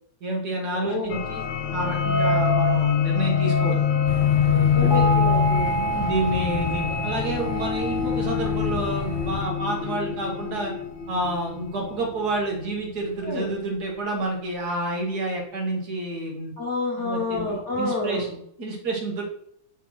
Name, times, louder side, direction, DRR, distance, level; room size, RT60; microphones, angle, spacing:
voice 1, 0.2-1.4 1.7-3.8 4.4-5.1 5.7-10.7 11.1-16.5 17.0-19.2, right 2 dB, 75° right, 0 dB, 1.9 m, -29 dB
voice 2, 0.7-1.2 4.7-5.8 13.2-13.5 16.6-18.3, left 3 dB, 45° left, -1 dB, 1.5 m, -28 dB
sound 1, 1.1-12.4, left 7 dB, 65° left, 1.0 m, -25 dB
sound 2, 4.1-9.4, left 5 dB, 85° left, 0.4 m, -32 dB
sound 3, 4.9-9.6, right 3 dB, 20° left, 1.0 m, -30 dB
5.9 x 3.0 x 5.6 m, 0.70 s
omnidirectional pair, 1.7 m